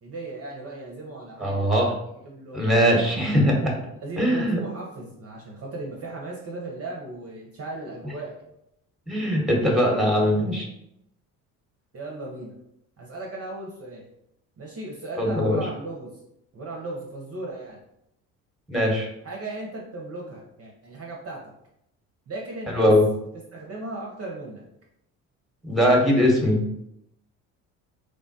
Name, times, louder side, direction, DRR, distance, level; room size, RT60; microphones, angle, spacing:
voice 1, 0.0-1.7 2.2-3.2 4.0-8.3 11.9-12.5 13.0-14.0 14.6-16.1 16.5-17.8 19.2-21.4 22.3-22.9 23.5-24.6, right 2 dB, 35° right, -2 dB, 0.7 m, -36 dB
voice 2, 1.4-1.9 2.5-3.7 4.2-4.6 9.1-10.7 15.2-15.6 18.7-19.1 22.7-23.0 25.6-26.6, equal, ahead, -1 dB, 1.0 m, -21 dB
3.2 x 2.1 x 2.6 m, 0.81 s
hypercardioid pair, 60°, 42 cm